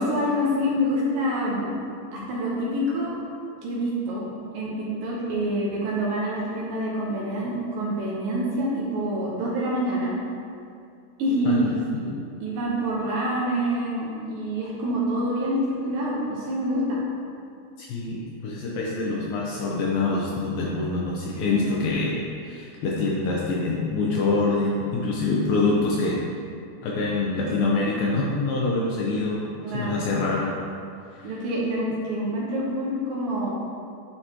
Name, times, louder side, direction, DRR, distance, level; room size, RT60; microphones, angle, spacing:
voice 1, 0.0-1.7 2.1-3.1 3.6-4.2 4.5-10.1 11.2-11.6 11.9-12.1 12.4-17.0 21.4-21.6 29.6-30.1 31.2-33.5, equal, 70° right, -5 dB, 2.4 m, -26 dB
voice 2, 17.8-26.2 26.8-29.5 29.7-30.5 31.1-31.3, left 3 dB, 75° left, -4 dB, 2.2 m, -25 dB
11.0 x 4.7 x 2.9 m, 2.5 s
omnidirectional pair, 4.7 m